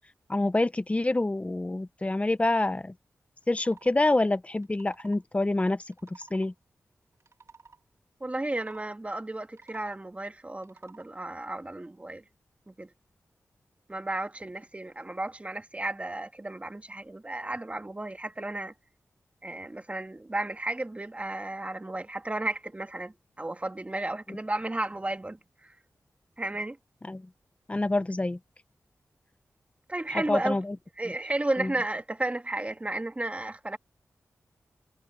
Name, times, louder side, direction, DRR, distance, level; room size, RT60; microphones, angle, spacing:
voice 1, 0.3-2.9 3.5-6.5 24.3-24.4 27.0-27.3 27.7-28.4 30.3-30.8 31.6-31.7, left 2 dB, 25° left, 0.9 m, -27 dB
sound 1, 3.4-3.9 4.6-5.2 5.9-6.5 7.1-7.8 8.5-8.9 9.4-10.0 10.6-11.1, right 4 dB, 60° right, 3.6 m, -54 dB
voice 2, 8.2-12.2 12.7-12.9 13.9-18.7 19.4-25.7 26.4-26.8 29.9-30.6 31.0-33.8, right 2 dB, 25° right, 2.3 m, -33 dB
cardioid pair, 60°, 6 cm